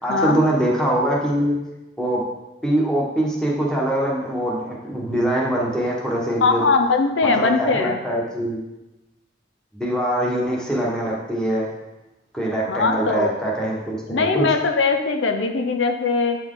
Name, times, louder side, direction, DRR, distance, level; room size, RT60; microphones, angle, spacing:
voice 1, 0.0-1.6 2.0-2.2 2.6-6.7 7.2-8.6 9.7-11.7 12.3-14.5, right 1 dB, 5° left, -4 dB, 1.4 m, -23 dB
voice 2, 6.4-8.0 12.7-13.3 14.1-16.4, left 4 dB, 80° left, 5 dB, 0.6 m, -20 dB
8.5 x 4.6 x 3.8 m, 0.99 s
head